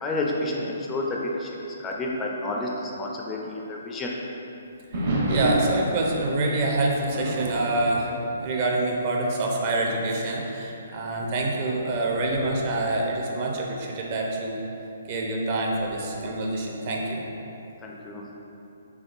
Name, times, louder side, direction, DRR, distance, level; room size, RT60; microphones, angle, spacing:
voice 1, 0.0-1.5 1.8-4.1 17.8-18.3, left 2 dB, 15° left, -1 dB, 0.3 m, -30 dB
sound 1, 4.9-9.1 9.4-9.7 10.4-10.5 11.2-13.9 15.7-16.3, right 1 dB, 60° right, 0.9 m, -31 dB
voice 2, 5.3-14.6 15.1-17.2, right 2 dB, 40° right, -1 dB, 0.5 m, -26 dB
3.6 x 3.5 x 2.5 m, 3.0 s
hypercardioid pair, 140°, 0 cm